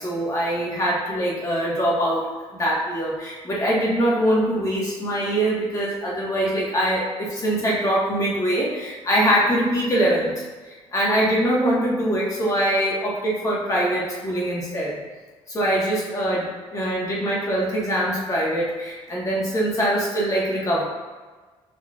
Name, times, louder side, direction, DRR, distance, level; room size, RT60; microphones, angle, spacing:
voice 1, 0.0-2.3 2.6-10.4 10.9-15.0 15.5-20.8, right 1 dB, 30° left, -5 dB, 1.5 m, -23 dB
6.3 x 3.1 x 2.5 m, 1.3 s
cardioid pair, 105°, 11 cm